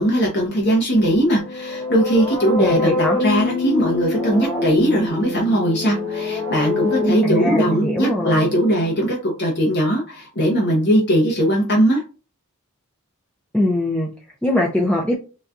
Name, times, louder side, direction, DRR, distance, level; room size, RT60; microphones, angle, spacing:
voice 1, 0.0-12.0, equal, 50° left, -1 dB, 0.8 m, -19 dB
sound 1, 1.2-9.0, left 1 dB, 25° left, 1.0 m, -25 dB
voice 2, 2.6-3.2 7.2-8.5 13.5-14.1 14.4-15.2, left 1 dB, 5° left, -2 dB, 0.4 m, -21 dB
4.0 x 2.2 x 2.4 m, 0.35 s
head